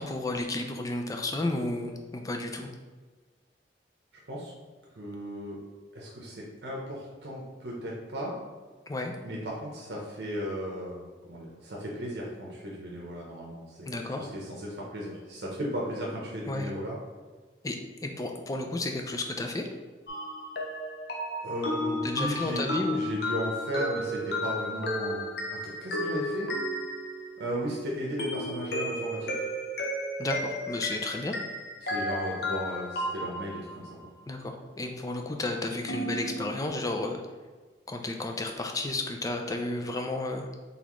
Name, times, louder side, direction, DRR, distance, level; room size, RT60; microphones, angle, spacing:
voice 1, 0.0-2.7 8.9-9.1 13.8-14.3 16.5-16.7 17.6-17.8 18.0-19.7 22.0-23.0 30.2-31.3 34.3-37.2 37.9-40.6, left 2 dB, 20° left, 4 dB, 0.4 m, -32 dB
voice 2, 4.9-5.6 5.9-8.4 9.2-17.0 21.4-22.6 22.9-26.5 27.4-29.3 31.8-34.0, equal, 75° right, -3 dB, 0.7 m, -35 dB
sound 1, 20.1-27.6 28.2-33.8 35.9-36.7, left 1 dB, 65° left, 0.7 m, -33 dB
4.1 x 3.4 x 3.0 m, 1.4 s
head